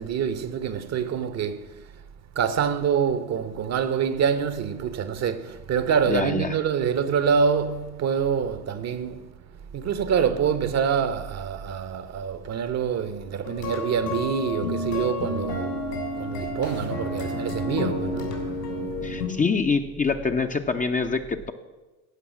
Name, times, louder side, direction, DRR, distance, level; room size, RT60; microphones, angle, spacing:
voice 1, 0.0-1.9 2.3-9.3 9.7-18.5, right 7 dB, 35° right, 0.9 m, -26 dB
voice 2, 6.1-6.6 19.0-21.5, left 4 dB, 15° left, 0.7 m, -25 dB
sound 1, 13.4-19.3, left 2 dB, 75° left, 3.4 m, -30 dB
15.0 x 5.5 x 7.3 m
figure-of-eight pair, 75°, 48 cm